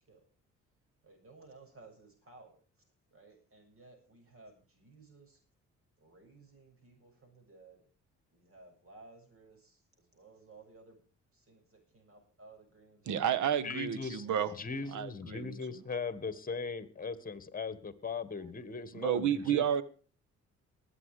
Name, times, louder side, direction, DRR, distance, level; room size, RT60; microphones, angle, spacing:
voice 1, 1.0-2.6 3.1-5.4 6.0-7.8 8.3-11.0 11.3-14.4 19.0-19.3, right 3 dB, 45° right, 4 dB, 6.9 m, -58 dB
voice 2, 13.0-14.5 14.9-15.6 18.9-19.8, right 9 dB, 75° right, 16 dB, 1.3 m, -31 dB
voice 3, 13.6-14.3 14.5-19.7, left 4 dB, 30° left, 14 dB, 1.7 m, -39 dB
20.5 x 8.5 x 5.0 m, 0.39 s
cardioid pair, 90°, 30 cm